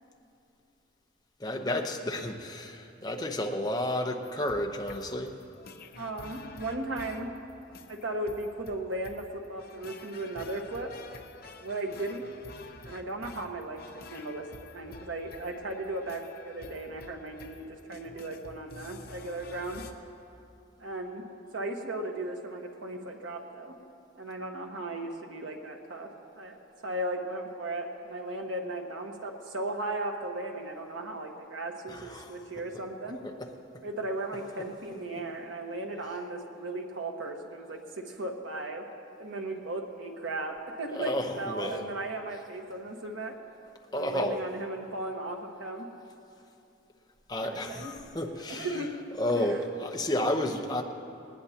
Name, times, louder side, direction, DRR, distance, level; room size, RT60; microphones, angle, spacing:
voice 1, 1.4-5.3 31.9-32.3 33.2-33.3 40.9-41.9 43.9-44.5 47.3-48.8 49.2-50.8, left 1 dB, 20° left, 2 dB, 0.9 m, -31 dB
sound 1, 4.2-19.9, left 3 dB, 50° left, 0.8 m, -49 dB
voice 2, 5.9-7.3 7.9-10.9 11.6-12.3 12.8-14.5 14.7-19.8 20.8-21.2 21.5-23.8 24.2-26.1 26.3-26.6 26.8-33.2 33.8-38.8 39.2-43.3 43.9-45.9 47.4-47.9 48.5-48.9 49.3-49.6, right 2 dB, 90° right, 1 dB, 1.5 m, -36 dB
19.0 x 19.0 x 2.9 m, 2.7 s
head